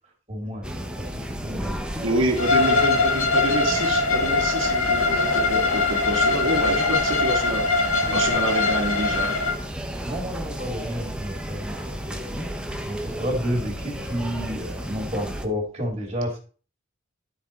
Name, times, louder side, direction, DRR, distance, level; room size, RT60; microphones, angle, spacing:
voice 1, 0.3-2.0 2.6-2.8 8.0-8.2 10.0-12.5 12.8-16.4, equal, 25° right, 0 dB, 2.4 m, -31 dB
sound 1, 0.6-15.5, equal, 5° right, 0.8 m, -33 dB
voice 2, 2.0-7.6 8.1-9.4, right 1 dB, 70° right, 4 dB, 2.1 m, -27 dB
Bowed string instrument, 2.4-9.6, left 3 dB, 85° left, 1.3 m, -22 dB
11.5 x 4.6 x 4.3 m, 0.38 s
head